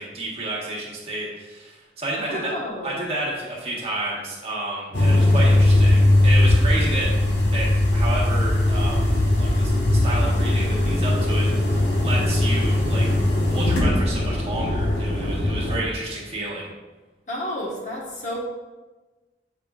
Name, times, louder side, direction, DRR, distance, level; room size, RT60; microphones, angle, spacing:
voice 1, 0.0-2.5 2.8-7.1 7.5-11.7 12.0-13.1 13.5-16.7, right 1 dB, 35° right, -4 dB, 1.4 m, -30 dB
voice 2, 2.1-3.0 17.3-18.4, left 1 dB, 45° left, -3 dB, 1.2 m, -31 dB
sound 1, 4.9-15.8, left 1 dB, 80° left, 1.5 m, -19 dB
7.7 x 5.1 x 2.4 m, 1.2 s
head